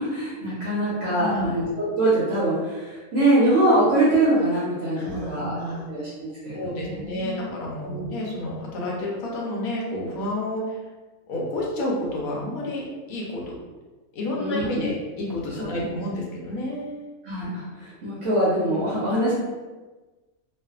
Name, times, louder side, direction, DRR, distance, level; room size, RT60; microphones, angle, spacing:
voice 1, 0.0-5.6 5.9-7.6 7.8-8.2 14.4-14.9 15.6-15.9 17.2-19.3, right 1 dB, 65° right, -9 dB, 0.9 m, -24 dB
voice 2, 1.2-1.6 4.9-5.9 6.5-10.8 11.3-12.8 13.1-13.6 14.1-17.1, left 1 dB, 75° left, -3 dB, 1.1 m, -30 dB
2.5 x 2.4 x 2.3 m, 1.2 s
omnidirectional pair, 1.5 m